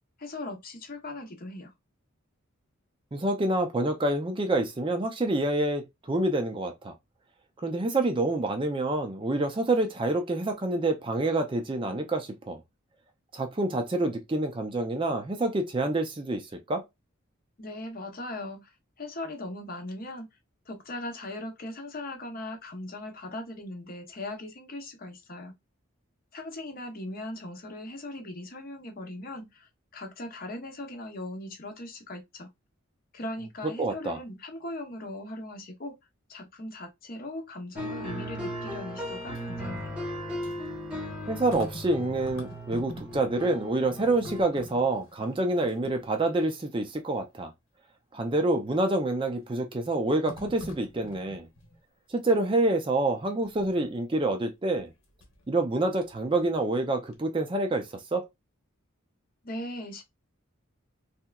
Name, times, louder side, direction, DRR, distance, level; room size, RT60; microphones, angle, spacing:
voice 1, 0.2-1.7 17.6-20.3 20.7-25.5 26.3-32.5 33.1-36.0 36.3-40.0 59.4-60.0, left 1 dB, 45° left, 0.7 m, -39 dB
voice 2, 3.1-6.9 7.6-12.6 13.3-16.8 33.8-34.2 41.3-47.5 48.1-51.5 52.1-54.9 55.5-58.3, right 2 dB, 25° right, 0.4 m, -27 dB
sound 1, 37.8-44.4, left 1 dB, 5° right, 0.9 m, -37 dB
sound 2, 39.2-43.5 43.8-46.6 47.1-47.2 48.8-49.3 50.3-51.8 53.4-53.8 54.7-55.5 55.9-56.9 57.1-57.2, left 1 dB, 70° left, 1.0 m, -47 dB
3.3 x 2.9 x 2.3 m
head